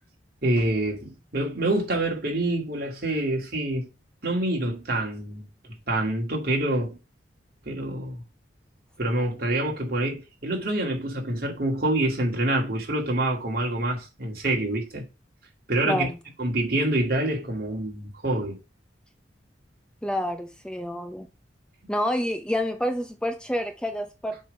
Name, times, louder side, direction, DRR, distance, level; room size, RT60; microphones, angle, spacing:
voice 1, 0.4-3.9 4.2-5.5 5.9-7.0 7.7-8.2 9.0-15.1 15.7-16.1 16.4-18.6, right 1 dB, 55° right, 2.3 m, -26 dB
voice 2, 15.8-16.2 20.0-21.3 21.9-24.4, equal, 5° left, 0.6 m, -28 dB
7.6 x 3.5 x 5.3 m
head